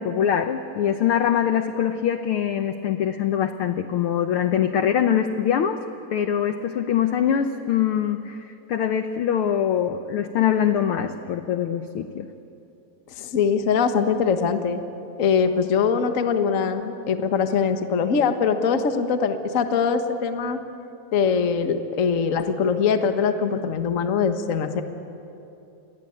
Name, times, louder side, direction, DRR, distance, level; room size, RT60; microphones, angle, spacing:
voice 1, 0.0-5.8 6.1-12.3, left 9 dB, 75° left, 8 dB, 1.3 m, -23 dB
voice 2, 13.1-14.8 15.2-20.6 21.1-24.8, left 6 dB, 45° left, 7 dB, 1.0 m, -22 dB
29.5 x 22.0 x 8.8 m, 2.8 s
omnidirectional pair, 3.4 m